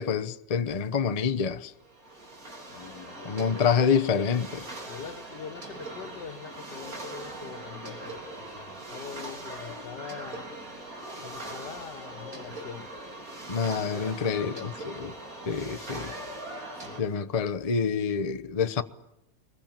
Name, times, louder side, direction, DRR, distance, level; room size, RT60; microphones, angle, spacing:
voice 1, 0.0-1.7 3.2-4.7 13.5-15.1 15.4-16.1 17.0-18.8, left 6 dB, 25° left, 0.8 m, -27 dB
sound 1, 1.8-17.0, right 1 dB, 50° right, 4.3 m, -41 dB
voice 2, 2.7-3.7 4.9-10.5 11.2-13.0 13.5-14.8 16.8-17.1, left 7 dB, 70° left, 2.0 m, -43 dB
24.0 x 21.5 x 8.9 m
omnidirectional pair, 1.9 m